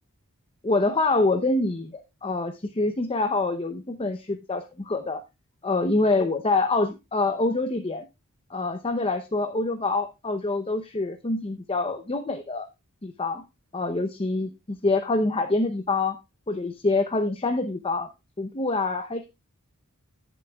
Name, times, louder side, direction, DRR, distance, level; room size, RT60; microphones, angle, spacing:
voice 1, 0.6-5.2 5.6-8.0 8.5-12.7 13.0-13.4 13.7-16.2 16.5-18.1 18.4-19.3, left 2 dB, 25° left, 7 dB, 0.7 m, -26 dB
18.0 x 6.9 x 2.3 m, 0.25 s
head